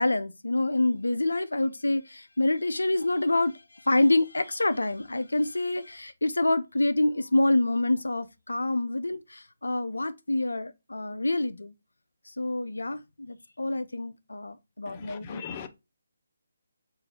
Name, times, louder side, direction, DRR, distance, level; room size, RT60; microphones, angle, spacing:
voice 1, 0.0-11.7 12.4-15.4, left 2 dB, 85° left, 0.4 m, -27 dB
voice 2, 14.9-15.7, left 7 dB, 30° left, 0.5 m, -40 dB
4.5 x 2.5 x 3.2 m
figure-of-eight pair, 150°, 0 cm